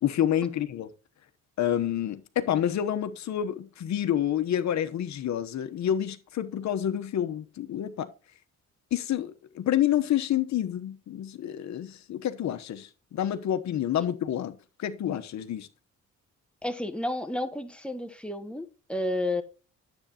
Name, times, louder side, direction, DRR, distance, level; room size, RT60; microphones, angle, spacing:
voice 1, 0.0-0.9 1.6-8.1 8.9-15.7, left 10 dB, 65° left, 1.1 m, -28 dB
voice 2, 16.6-19.4, left 1 dB, 5° left, 1.3 m, -31 dB
9.7 x 8.0 x 2.9 m
cardioid pair, 90°, 30 cm